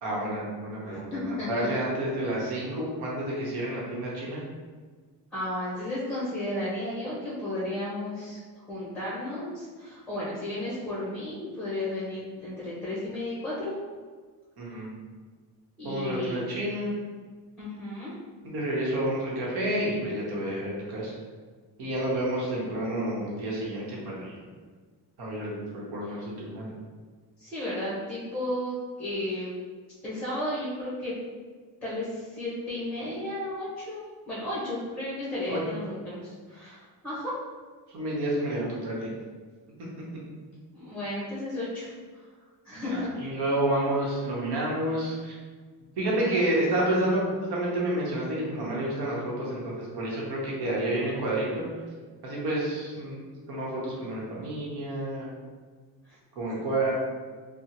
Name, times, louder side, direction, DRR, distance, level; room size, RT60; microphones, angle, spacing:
voice 1, 0.0-4.4 14.6-14.9 15.8-17.0 18.4-21.1 21.8-24.4 25.2-26.7 35.5-35.6 37.9-39.1 42.7-45.4 46.0-51.6 52.2-53.2 53.5-55.3 56.3-56.9, right 1 dB, 65° right, -5 dB, 1.0 m, -29 dB
voice 2, 0.9-1.7 5.3-8.4 8.7-13.8 15.8-16.4 17.6-18.1 26.1-26.2 27.4-29.5 30.0-31.1 31.8-37.3 40.7-41.9 42.6-43.1 56.1-56.2, left 1 dB, 5° left, -8 dB, 0.7 m, -33 dB
3.4 x 2.1 x 2.9 m, 1.5 s
cardioid pair, 155°, 41 cm